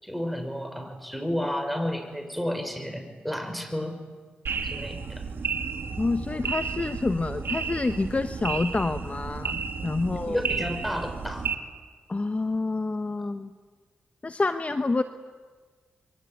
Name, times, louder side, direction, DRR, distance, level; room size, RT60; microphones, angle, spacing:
voice 1, 0.0-4.0 4.6-5.2 10.0-11.5, equal, ahead, 7 dB, 6.1 m, -32 dB
sound 1, 4.5-11.5, right 5 dB, 65° right, 2.7 m, -32 dB
voice 2, 6.0-10.4 12.1-13.5 14.2-15.0, left 3 dB, 35° left, 9 dB, 1.2 m, -28 dB
27.5 x 23.0 x 9.5 m, 1.5 s
supercardioid pair, 45°, 4 cm